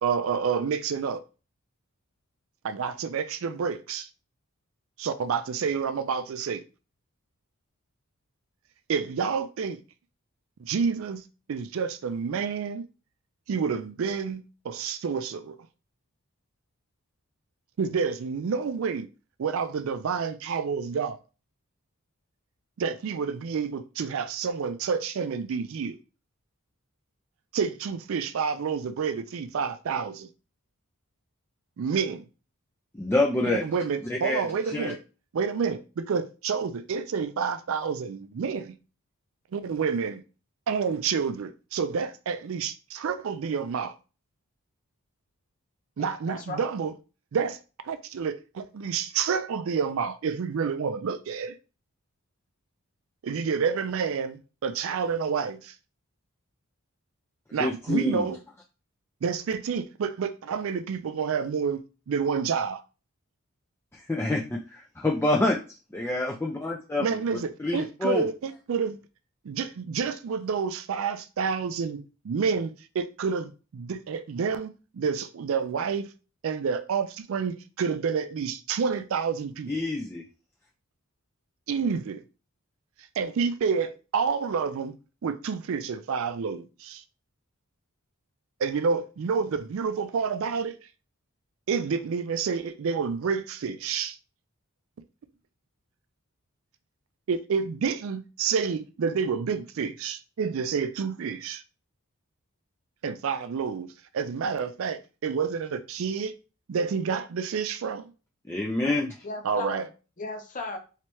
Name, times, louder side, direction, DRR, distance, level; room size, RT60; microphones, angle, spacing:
voice 1, 0.0-1.2 2.6-4.1 5.0-6.6 8.9-9.8 10.6-11.2 11.5-12.8 13.5-15.6 17.8-19.1 19.4-21.2 22.8-26.0 27.5-30.3 31.8-32.2 33.5-35.0 35.3-38.8 39.5-40.2 40.7-44.0 46.0-46.9 47.3-47.6 47.8-51.6 53.2-55.7 57.5-58.4 59.2-62.8 67.0-69.0 69.4-76.1 76.4-79.9 81.7-82.2 83.2-84.9 85.2-87.0 88.6-90.7 91.7-94.2 97.3-101.6 103.0-103.9 104.1-106.3 106.7-108.1 109.4-109.9, right 6 dB, 65° right, 0.4 m, -29 dB
voice 2, 32.9-33.6 34.1-34.4 34.7-34.9 57.6-58.2 63.9-65.6 65.9-67.0 67.3-68.3 79.7-80.2 108.5-109.1, left 2 dB, 10° left, 0.3 m, -27 dB
voice 3, 46.0-46.7 108.8-109.9 110.2-110.8, left 2 dB, 35° left, 0.7 m, -37 dB
3.2 x 3.0 x 3.0 m
head